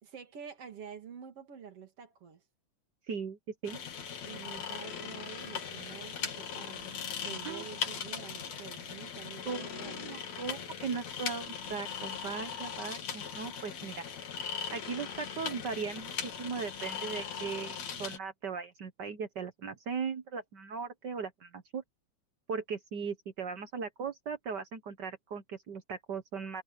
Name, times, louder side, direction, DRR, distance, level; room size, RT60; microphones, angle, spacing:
voice 1, 0.0-2.4 4.2-10.1, right 7 dB, 50° right, 3.1 m, -48 dB
voice 2, 3.1-3.8 7.4-7.6 9.5-14.1 14.7-21.8 22.5-26.6, right 5 dB, 70° right, 1.0 m, -38 dB
sound 1, 3.6-18.2, left 7 dB, 60° left, 3.5 m, -39 dB
omnidirectional pair, 3.5 m